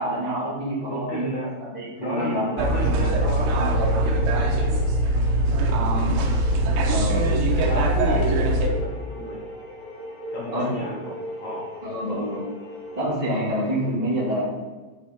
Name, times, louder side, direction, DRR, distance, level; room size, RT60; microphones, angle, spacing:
voice 1, 0.0-1.3 1.7-2.4 2.9-3.0 6.9-7.3 10.5-10.7 11.8-12.4 12.9-14.4, equal, 35° right, -7 dB, 0.6 m, -27 dB
voice 2, 0.9-1.5 2.0-4.8 5.1-6.1 7.2-9.4 10.3-11.6, equal, 80° left, -6 dB, 1.6 m, -32 dB
sound 1, 2.1-13.1, equal, 45° left, 1.5 m, -39 dB
sound 2, 2.6-8.7, right 1 dB, 85° right, 3.1 m, -22 dB
6.3 x 5.9 x 4.4 m, 1.3 s
omnidirectional pair, 5.2 m